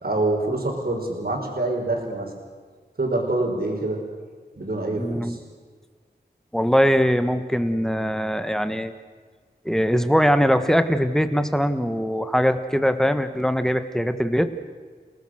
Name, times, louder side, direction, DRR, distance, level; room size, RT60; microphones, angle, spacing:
voice 1, 0.0-2.3 3.0-4.0 4.6-5.4, right 2 dB, 65° right, 1 dB, 5.0 m, -25 dB
voice 2, 5.0-5.4 6.5-8.9 9.6-14.5, equal, 5° left, 9 dB, 1.6 m, -21 dB
30.0 x 19.0 x 6.5 m, 1.6 s
wide cardioid pair, 70°, 17 cm